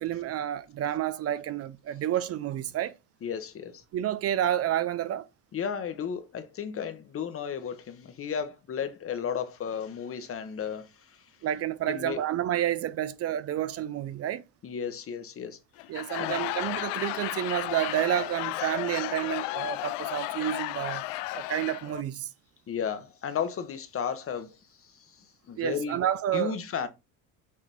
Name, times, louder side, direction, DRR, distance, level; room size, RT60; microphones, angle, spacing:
voice 1, 0.0-2.9 3.9-5.3 11.4-14.4 15.9-21.0 21.3-22.3 25.6-26.6, right 11 dB, 45° right, 0.5 m, -30 dB
voice 2, 3.2-3.8 5.5-11.2 11.9-12.2 14.6-15.6 16.1-16.4 22.7-26.0 26.3-26.9, left 7 dB, 40° left, 1.1 m, -34 dB
Laughter / Crowd, 15.8-22.0, left 18 dB, 85° left, 0.5 m, -33 dB
6.6 x 2.9 x 5.2 m
supercardioid pair, 95°, 33 cm